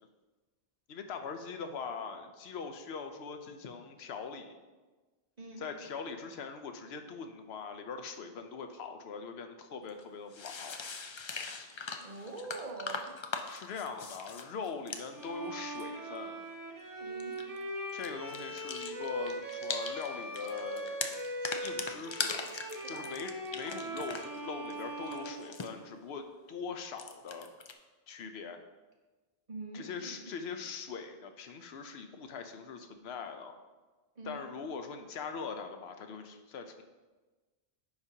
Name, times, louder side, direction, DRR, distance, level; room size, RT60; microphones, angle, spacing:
voice 1, 0.9-4.6 5.6-10.8 13.5-16.4 17.9-21.2 21.6-22.6 22.9-27.5 28.1-28.6 29.7-33.5 34.2-36.8, left 5 dB, 80° left, 6 dB, 0.9 m, -42 dB
sound 1, 9.9-10.0 10.3-15.9 17.2-17.6 17.9-20.1 20.3-24.4 24.7-25.7 26.9-27.7, left 4 dB, 50° left, 0.3 m, -41 dB
voice 2, 12.0-13.1 17.0-17.3 22.8-23.1 29.5-30.3 34.2-34.4, right 3 dB, 45° right, 0 dB, 1.1 m, -44 dB
Bowed string instrument, 15.1-26.1, right 1 dB, 25° right, 0.6 m, -41 dB
9.5 x 5.1 x 2.8 m, 1.3 s
omnidirectional pair, 1.0 m